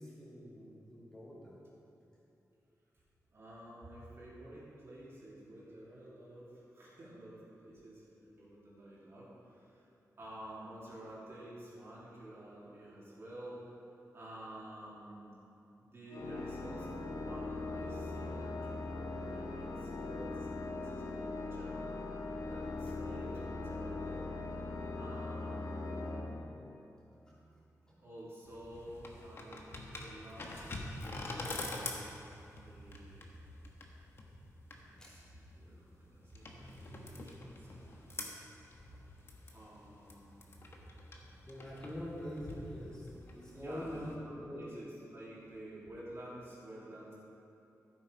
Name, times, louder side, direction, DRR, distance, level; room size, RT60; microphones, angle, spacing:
voice 1, 0.0-1.6 22.8-22.9 27.9-28.0 35.0-35.1 41.5-44.6, equal, 10° left, -8 dB, 3.2 m, -45 dB
voice 2, 3.3-9.9 10.2-13.6 14.1-15.3 15.8-21.8 22.5-24.2 25.0-26.2 28.0-31.8 32.6-33.3 34.7-38.3 39.5-40.5 43.5-47.1, right 1 dB, 45° right, -8 dB, 3.0 m, -51 dB
Organ, 16.1-27.0, left 2 dB, 65° left, 0.9 m, -40 dB
sound 1, 28.5-44.2, left 2 dB, 40° left, 1.3 m, -46 dB
13.5 x 8.2 x 5.3 m, 2.8 s
wide cardioid pair, 160°, 6 cm